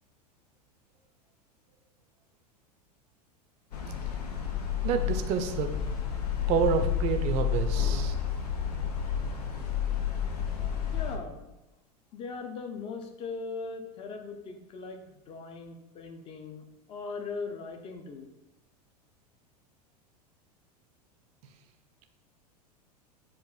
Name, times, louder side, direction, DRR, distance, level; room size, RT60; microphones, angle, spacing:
sound 1, 3.7-11.2, left 8 dB, 70° left, 0.6 m, -30 dB
voice 1, 4.8-5.7 6.5-8.1, right 7 dB, 35° right, 7 dB, 0.4 m, -28 dB
voice 2, 10.9-11.5 12.1-18.3, left 4 dB, 25° left, 6 dB, 0.5 m, -39 dB
6.7 x 2.5 x 2.3 m, 0.97 s
figure-of-eight pair, 85°, 21 cm